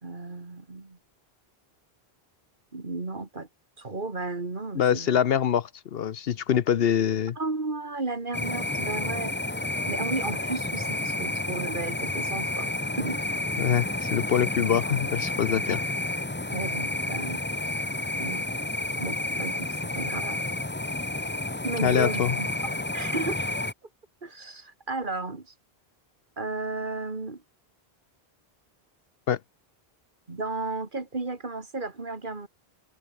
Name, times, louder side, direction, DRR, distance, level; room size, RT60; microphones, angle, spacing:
voice 1, 0.0-1.0 2.7-3.5 3.8-5.2 7.4-9.3 9.9-12.7 13.0-13.2 15.7-15.8 16.5-17.4 18.2-18.4 19.0-19.7 19.9-20.4 21.6-22.5 22.9-23.4 24.2-25.5 26.4-27.4 30.3-32.5, right 3 dB, 50° right, 2.5 m, -33 dB
voice 2, 4.7-7.4 13.6-15.8 21.8-22.4 29.3-29.4, left 9 dB, 70° left, 0.9 m, -24 dB
sound 1, 8.3-23.7, left 2 dB, 10° left, 0.8 m, -30 dB
omnidirectional pair, 1.0 m